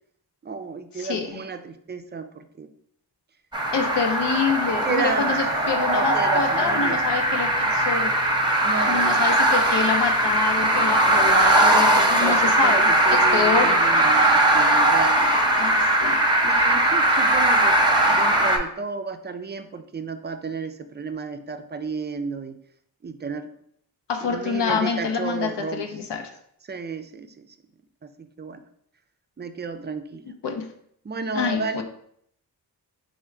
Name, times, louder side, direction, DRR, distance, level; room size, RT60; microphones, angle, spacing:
voice 1, 0.4-2.7 4.8-7.0 8.6-9.4 11.6-15.4 16.4-22.6 23.0-23.5 24.2-25.9 26.7-27.5 28.2-28.6 29.4-30.3 31.0-31.8, right 4 dB, 25° right, 9 dB, 0.4 m, -32 dB
voice 2, 1.0-1.4 3.7-8.1 8.9-12.9 13.3-13.7 15.5-16.2 24.1-26.3 30.4-30.7 31.3-31.8, left 5 dB, 85° left, 4 dB, 0.6 m, -26 dB
sound 1, 3.5-18.6, right 1 dB, 10° right, 0.7 m, -20 dB
3.6 x 2.2 x 4.4 m, 0.68 s
cardioid pair, 45°, 41 cm